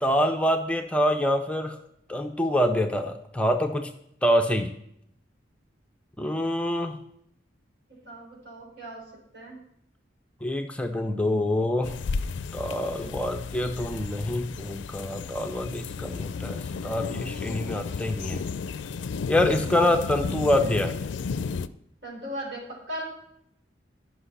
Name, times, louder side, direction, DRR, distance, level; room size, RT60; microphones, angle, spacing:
voice 1, 0.0-1.7 2.1-3.9 4.2-4.7 6.2-7.0 10.4-12.0 12.5-18.4 19.3-21.0, left 1 dB, 5° left, 5 dB, 0.4 m, -26 dB
voice 2, 7.9-9.0 9.3-9.6 22.0-23.0, equal, 80° right, -1 dB, 3.6 m, -38 dB
sound 1, 11.8-21.7, left 5 dB, 85° left, 0.4 m, -33 dB
10.5 x 5.9 x 5.5 m, 0.75 s
head